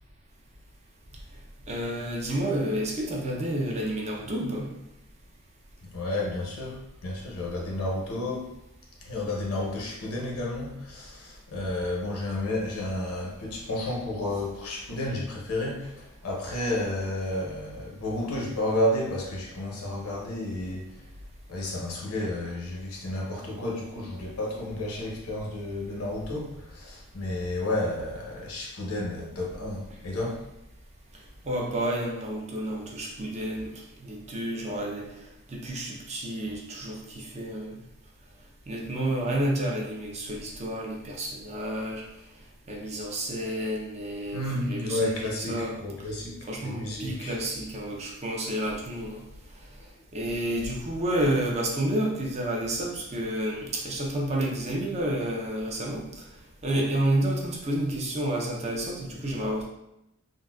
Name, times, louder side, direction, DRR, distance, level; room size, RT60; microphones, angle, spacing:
voice 1, 1.7-4.7 31.4-33.7 34.0-35.1 35.5-37.8 38.7-42.0 42.7-45.8 46.5-49.2 50.1-56.0 56.6-59.6, right 1 dB, 30° right, -1 dB, 0.5 m, -30 dB
voice 2, 5.8-8.5 9.0-20.9 21.5-30.4 44.3-47.4, left 1 dB, 85° left, -2 dB, 0.8 m, -31 dB
3.8 x 2.1 x 2.3 m, 0.85 s
head